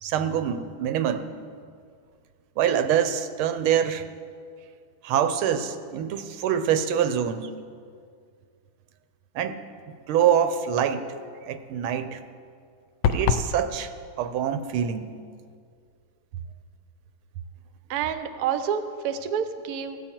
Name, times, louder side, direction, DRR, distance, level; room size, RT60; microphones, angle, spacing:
voice 1, 0.0-1.2 2.6-4.0 5.0-7.5 9.3-9.6 10.1-11.1 11.5-12.2 13.1-13.9 14.2-15.1, right 9 dB, 90° right, 9 dB, 1.5 m, -25 dB
sound 1, 13.0-13.5, left 7 dB, 75° left, 1.0 m, -22 dB
voice 2, 17.9-20.1, right 8 dB, 65° right, 9 dB, 0.9 m, -28 dB
16.5 x 7.9 x 4.5 m, 2.2 s
omnidirectional pair, 2.3 m